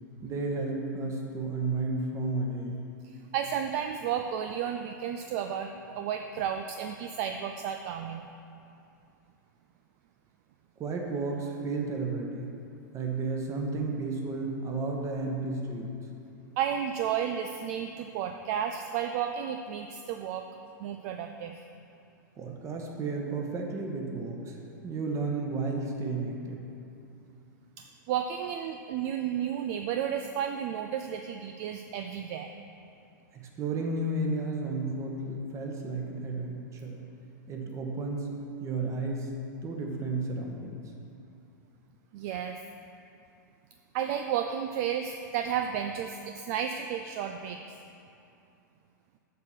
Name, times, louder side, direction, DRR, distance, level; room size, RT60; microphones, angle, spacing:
voice 1, 0.2-2.8 10.8-12.5 12.9-15.9 22.4-24.6 24.8-26.6 33.3-37.0 37.5-38.3 38.6-39.3 39.6-40.8, right 3 dB, 30° right, 1 dB, 1.3 m, -32 dB
voice 2, 3.0-8.3 16.6-20.5 20.8-21.6 27.8-32.5 42.1-42.6 43.9-47.8, right 9 dB, 50° right, 6 dB, 0.4 m, -32 dB
7.4 x 6.0 x 6.0 m, 2.7 s
hypercardioid pair, 105°, 11 cm